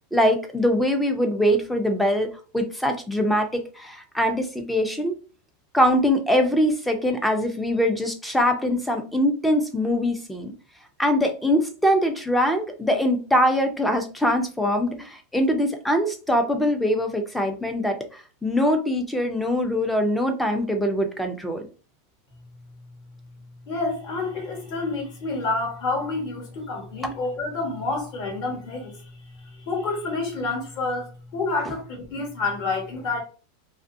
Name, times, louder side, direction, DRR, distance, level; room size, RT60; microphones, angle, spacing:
voice 1, 0.1-5.2 5.7-10.5 11.0-21.6, equal, 5° left, 0.4 m, -23 dB
voice 2, 23.7-29.1 29.6-33.2, left 3 dB, 40° left, 1.1 m, -28 dB
2.5 x 2.4 x 2.5 m
supercardioid pair, 170°, 0 cm